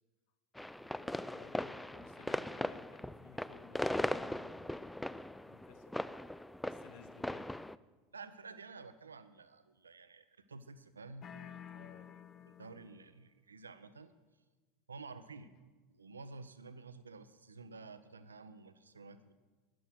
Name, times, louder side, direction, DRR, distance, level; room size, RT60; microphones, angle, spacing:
sound 1, 0.6-7.8, left 1 dB, 5° left, 0.3 m, -39 dB
voice 1, 0.8-6.0 6.6-7.5 11.7-12.1, left 8 dB, 55° left, 9 dB, 1.1 m, -59 dB
voice 2, 8.1-11.9 12.5-14.1 14.9-15.5 15.9-19.3, right 4 dB, 80° right, 12 dB, 0.7 m, -51 dB
sound 2, 11.2-13.2, left 8 dB, 35° left, 0.8 m, -51 dB
12.5 x 10.0 x 6.3 m, 1.3 s
figure-of-eight pair, 80°, 0 cm